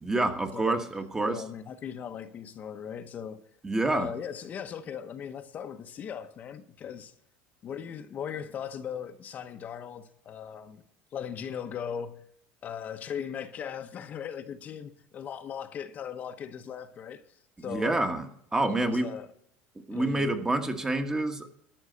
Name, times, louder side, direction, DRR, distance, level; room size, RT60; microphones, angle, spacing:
voice 1, 0.0-1.4 3.6-4.1 17.6-18.3 18.5-19.1 19.9-21.5, right 2 dB, 15° right, 1.3 m, -27 dB
voice 2, 1.3-3.4 3.9-7.1 7.6-10.8 11.1-12.2 12.6-17.2 17.6-18.0 18.6-19.3 19.9-20.3, left 8 dB, 40° left, 0.9 m, -38 dB
13.0 x 6.3 x 7.7 m
supercardioid pair, 130°, 5 cm